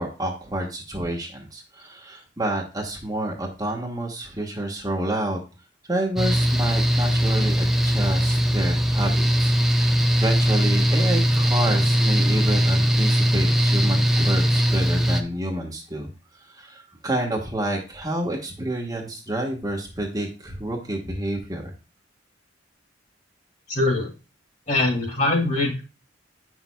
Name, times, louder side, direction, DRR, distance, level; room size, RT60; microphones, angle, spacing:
voice 1, 0.0-5.4 5.9-16.1 16.4-21.7, right 1 dB, 20° right, 0 dB, 1.2 m, -29 dB
Mechanical fan, 6.2-15.2, equal, ahead, 0.6 m, -20 dB
voice 2, 23.7-24.1 24.7-25.8, left 2 dB, 40° left, 1 dB, 2.6 m, -22 dB
8.7 x 6.2 x 2.2 m, 0.31 s
head